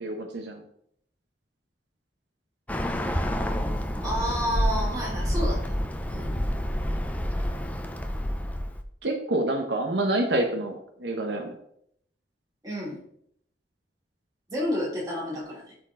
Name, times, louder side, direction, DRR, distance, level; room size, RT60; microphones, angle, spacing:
voice 1, 0.0-0.6 9.0-10.7 11.0-11.5, right 1 dB, 80° right, 4 dB, 1.1 m, -27 dB
Bird, 2.7-8.8, equal, 10° left, 0.6 m, -28 dB
voice 2, 4.0-5.7 6.1-6.3 12.6-13.0 14.5-15.7, equal, 20° right, -5 dB, 3.4 m, -30 dB
12.0 x 4.4 x 3.8 m, 0.70 s
head